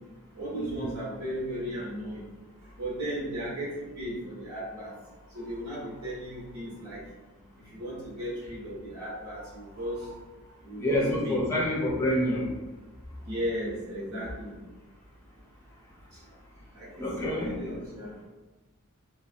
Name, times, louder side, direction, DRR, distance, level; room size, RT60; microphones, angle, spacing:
voice 1, 0.3-2.2 2.8-4.9 5.3-7.0 7.7-10.1 10.6-11.4 13.2-14.6 16.8-18.1, equal, 80° right, -7 dB, 1.2 m, -35 dB
voice 2, 10.8-12.5 17.0-17.5, left 1 dB, 15° left, -4 dB, 0.5 m, -27 dB
2.5 x 2.3 x 2.4 m, 1.1 s
head